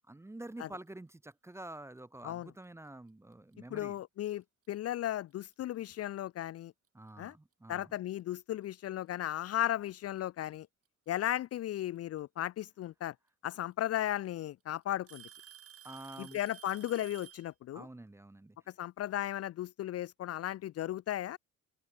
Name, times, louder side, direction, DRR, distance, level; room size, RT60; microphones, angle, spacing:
voice 1, 0.1-4.0 6.9-7.9 15.8-16.4 17.7-18.6, right 1 dB, 10° right, 0.7 m, -48 dB
Alarm / Tick-tock, 3.5-3.8 4.6-4.7 5.5-5.6 7.3-7.4 8.6-8.7 10.0-10.4 12.2-12.3 13.5-13.6 13.9-14.4 15.1-17.5, right 9 dB, 50° right, 1.0 m, -53 dB
voice 2, 3.7-6.7 7.2-7.3 7.7-10.7 11.1-13.1 13.4-15.2 16.2-17.9 18.8-21.4, left 13 dB, 55° left, 0.4 m, -35 dB
open air
cardioid pair, 90°, 30 cm